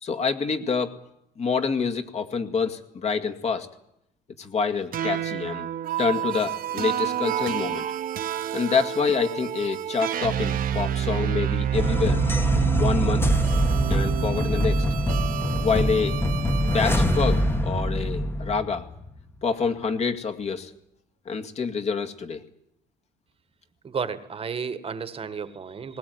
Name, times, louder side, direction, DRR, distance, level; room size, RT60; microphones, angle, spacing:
voice 1, 0.0-0.9 1.4-3.7 4.4-5.7 6.0-7.9 8.5-12.2 12.7-13.2 13.9-14.9 15.6-16.2 16.6-18.8 19.4-20.7 21.3-22.4, left 5 dB, 40° left, 7 dB, 2.2 m, -27 dB
sound 1, 4.9-17.4, right 10 dB, 55° right, 1.3 m, -28 dB
sound 2, 11.7-19.2, equal, 15° left, 1.5 m, -24 dB
voice 2, 23.8-26.0, right 6 dB, 35° right, 12 dB, 1.6 m, -32 dB
20.0 x 18.5 x 9.5 m, 0.80 s
cardioid pair, 110°, 17 cm